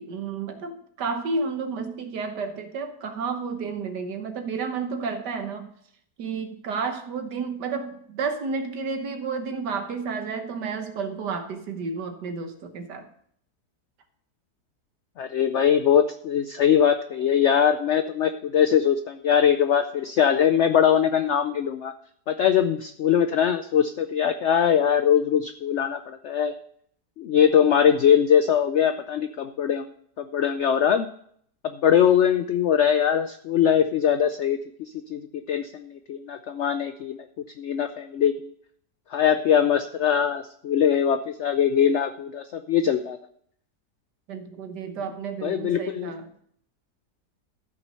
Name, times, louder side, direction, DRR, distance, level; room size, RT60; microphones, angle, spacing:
voice 1, 0.0-5.7 6.2-13.1 44.3-46.3, right 4 dB, 85° right, 7 dB, 1.8 m, -31 dB
voice 2, 15.2-21.9 22.3-26.5 27.2-29.9 30.2-31.1 31.6-37.2 37.6-38.5 39.1-43.2 45.4-46.1, left 8 dB, 80° left, 9 dB, 0.6 m, -22 dB
13.5 x 6.0 x 5.5 m, 0.65 s
omnidirectional pair, 1.8 m